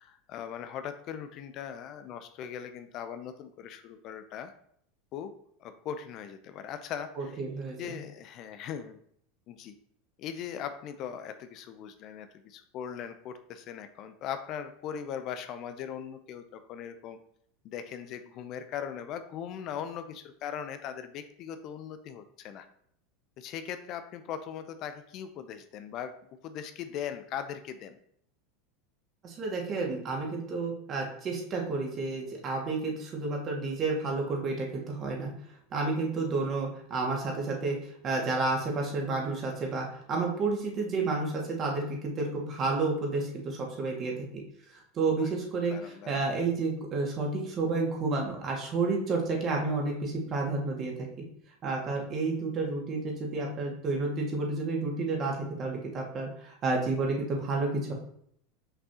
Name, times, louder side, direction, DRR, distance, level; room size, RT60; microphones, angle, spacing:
voice 1, 0.0-4.5 5.1-5.3 5.6-7.3 7.8-9.0 9.5-9.8 10.2-17.2 17.6-22.7 23.4-26.1 26.4-28.0 45.7-46.2, left 8 dB, 50° left, 9 dB, 0.6 m, -39 dB
voice 2, 7.2-7.8 29.2-35.3 35.7-44.4 44.7-51.1 51.6-57.9, right 3 dB, 40° right, 0 dB, 2.0 m, -31 dB
6.1 x 5.3 x 2.9 m, 0.67 s
hypercardioid pair, 85°, 0 cm